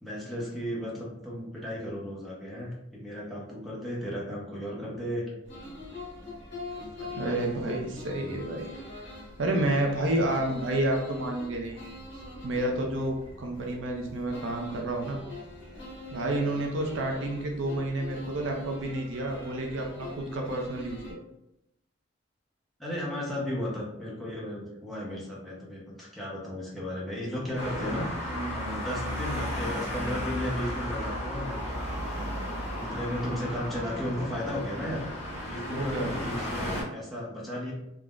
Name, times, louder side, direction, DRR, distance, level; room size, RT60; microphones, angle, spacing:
voice 1, 0.0-5.3 6.7-7.4 16.4-16.6 22.8-28.1 28.5-32.4 32.8-35.0 35.4-37.7, equal, ahead, -6 dB, 0.7 m, -35 dB
sound 1, 5.4-21.1, left 2 dB, 65° left, 1.1 m, -43 dB
voice 2, 7.1-8.7 9.4-11.8 12.4-15.2 16.1-21.2 27.5-27.9 28.3-28.7 33.1-33.4 35.7-36.1, right 1 dB, 80° right, 2 dB, 0.5 m, -30 dB
Traffic noise roadway noise, 27.6-36.8, left 1 dB, 35° left, 1.0 m, -34 dB
3.5 x 2.0 x 2.3 m, 0.85 s
head